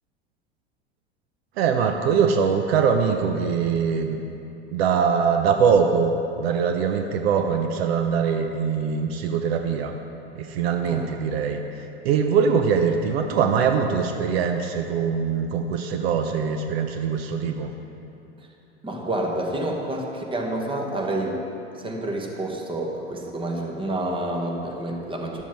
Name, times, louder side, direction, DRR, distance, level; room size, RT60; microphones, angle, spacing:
voice 1, 1.6-4.2 4.7-6.1 6.4-9.9 10.4-17.7, right 6 dB, 65° right, 5 dB, 0.8 m, -22 dB
voice 2, 18.8-21.4 21.8-25.4, right 1 dB, 15° right, 1 dB, 1.3 m, -28 dB
12.0 x 7.1 x 4.5 m, 2.8 s
hypercardioid pair, 95°, 34 cm